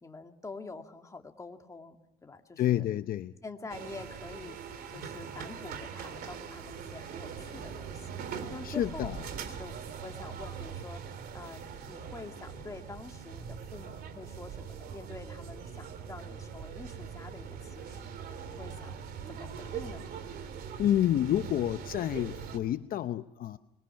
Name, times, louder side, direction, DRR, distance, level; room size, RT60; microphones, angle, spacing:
voice 1, 0.0-2.9 3.4-4.6 4.9-8.2 8.5-9.1 9.4-11.0 11.3-18.0 18.4-19.0 19.3-20.1, left 3 dB, 20° left, 4 dB, 2.2 m, -46 dB
voice 2, 2.6-3.3 8.6-9.2 20.8-23.6, left 12 dB, 60° left, 11 dB, 0.7 m, -29 dB
sound 1, 3.7-22.6, right 7 dB, 65° right, 3.1 m, -42 dB
sound 2, 4.8-6.3 6.6-6.9 7.4-7.5 8.4-8.5 8.8-8.9 9.7-9.9 11.0-11.4 11.7-13.3 13.6-13.8 14.3-14.8 15.2-15.3 15.5-15.6 16.0-16.1 17.1-17.2 17.5-17.8 18.0-18.2 18.5-20.2 20.5-20.6, left 6 dB, 35° left, 6.2 m, -58 dB
25.0 x 22.0 x 5.8 m, 0.92 s
cardioid pair, 110°, 17 cm